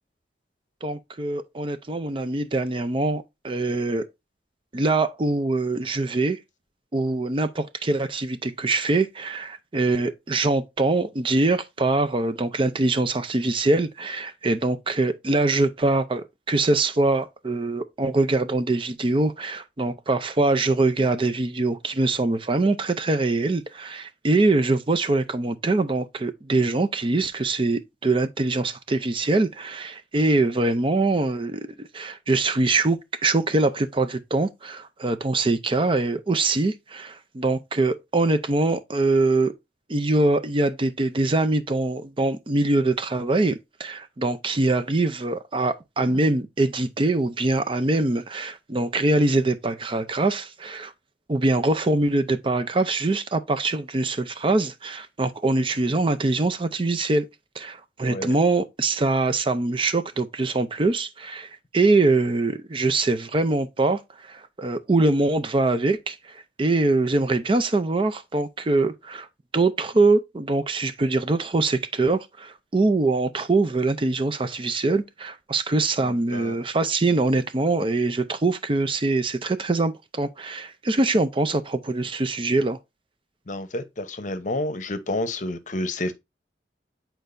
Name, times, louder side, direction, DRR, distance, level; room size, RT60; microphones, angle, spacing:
voice 1, 0.8-4.1 4.7-6.4 6.9-39.5 39.9-50.9 51.3-57.3 57.6-69.3 69.5-82.8, right 2 dB, 30° right, 0.5 m, -23 dB
voice 2, 76.0-76.6 83.5-86.1, left 1 dB, 45° left, 0.8 m, -30 dB
8.6 x 4.5 x 2.6 m
head